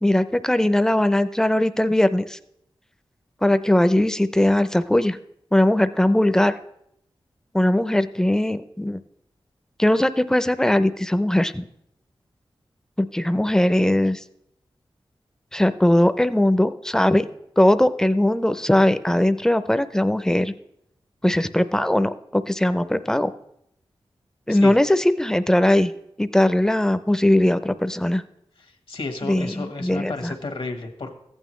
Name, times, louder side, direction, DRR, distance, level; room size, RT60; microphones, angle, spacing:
voice 1, 0.0-2.4 3.4-5.2 5.5-6.6 7.5-9.0 9.8-11.7 13.0-14.2 15.5-17.2 17.6-20.5 21.2-23.3 24.5-25.9 26.2-28.2 29.2-30.3, left 1 dB, 5° left, 12 dB, 0.5 m, -20 dB
voice 2, 28.6-31.2, left 3 dB, 70° left, 5 dB, 1.3 m, -32 dB
14.5 x 9.0 x 3.1 m, 0.76 s
wide cardioid pair, 90°, 10 cm